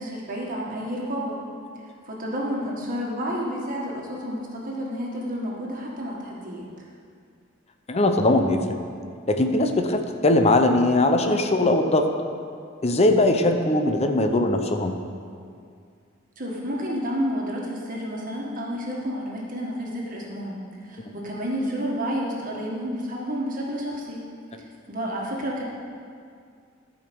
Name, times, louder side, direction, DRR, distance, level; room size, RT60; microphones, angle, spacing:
voice 1, 0.0-1.4 2.1-6.6 16.4-24.3 24.6-25.6, equal, 45° right, -3 dB, 1.6 m, -30 dB
voice 2, 7.9-8.6 9.3-12.1 12.8-14.9, left 2 dB, 30° left, 5 dB, 0.7 m, -20 dB
12.5 x 5.1 x 6.9 m, 2.2 s
head